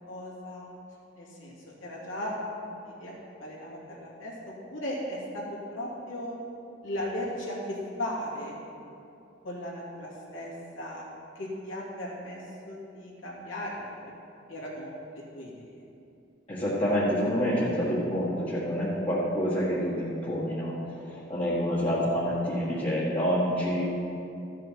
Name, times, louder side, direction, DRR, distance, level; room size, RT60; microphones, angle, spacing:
voice 1, 0.1-0.7 1.2-1.5 1.8-3.1 3.4-4.3 4.7-5.4 5.7-6.3 6.8-8.6 9.4-11.1 11.4-12.4 12.7-14.0 14.5-15.5, left 1 dB, 90° left, -5 dB, 2.9 m, -36 dB
voice 2, 16.5-20.7 21.0-23.8, equal, 30° left, -8 dB, 1.6 m, -27 dB
14.0 x 6.6 x 5.7 m, 2.7 s
head